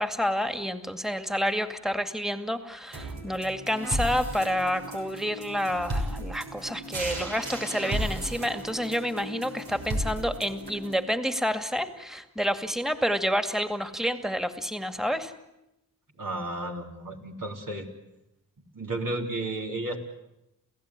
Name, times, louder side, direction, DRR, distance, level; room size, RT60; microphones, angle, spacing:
voice 1, 0.0-15.3, equal, ahead, 9 dB, 2.2 m, -29 dB
sound 1, 2.9-10.9, right 1 dB, 75° right, 6.2 m, -34 dB
voice 2, 16.2-17.9 18.7-20.0, right 2 dB, 60° right, 2 dB, 3.9 m, -33 dB
29.0 x 16.0 x 9.9 m, 0.91 s
cardioid pair, 50°, 37 cm